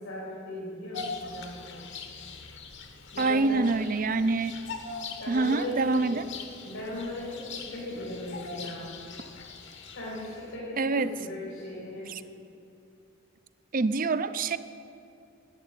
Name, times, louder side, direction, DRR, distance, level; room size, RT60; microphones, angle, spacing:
voice 1, 0.0-1.9 3.1-3.6 5.2-6.2 6.6-8.9 9.9-12.1, left 1 dB, 85° left, -6 dB, 3.7 m, -37 dB
Bird vocalization bird call bird song, 0.9-10.6, left 4 dB, 60° left, 1.3 m, -42 dB
voice 2, 3.2-4.5 5.3-6.3 10.8-11.1 12.1-12.2 13.7-14.6, right 3 dB, 40° right, 14 dB, 0.5 m, -26 dB
11.5 x 8.2 x 9.1 m, 2.6 s
head